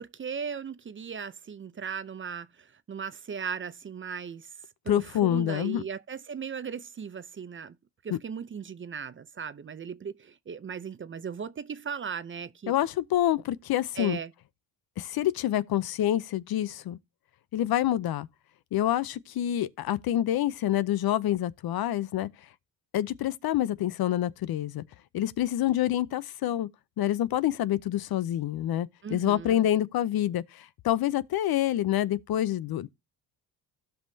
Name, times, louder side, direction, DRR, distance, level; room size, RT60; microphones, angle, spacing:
voice 1, 0.0-4.6 4.8-7.8 8.0-12.7 14.0-14.3 29.0-29.7, right 6 dB, 30° right, 0.6 m, -37 dB
voice 2, 4.9-5.8 8.1-8.2 12.7-14.2 15.0-17.0 17.5-18.3 18.7-22.3 22.9-24.8 25.1-26.7 27.0-32.9, left 12 dB, 60° left, 0.7 m, -27 dB
16.0 x 5.6 x 2.7 m
cardioid pair, 95°, 41 cm